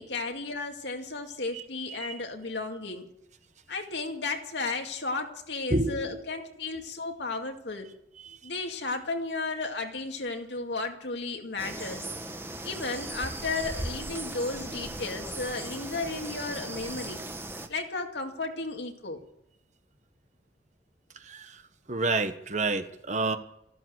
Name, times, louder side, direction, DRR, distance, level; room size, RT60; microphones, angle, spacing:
voice 1, 0.0-3.1 3.7-7.9 8.4-12.1 12.6-17.2 17.7-19.2, left 3 dB, 75° left, 3 dB, 2.3 m, -34 dB
voice 2, 5.7-6.1 21.3-21.5 21.9-23.4, right 3 dB, 40° right, 9 dB, 1.2 m, -28 dB
sound 1, 11.6-17.7, right 2 dB, 15° right, 1.2 m, -38 dB
14.5 x 12.5 x 8.0 m, 0.78 s
head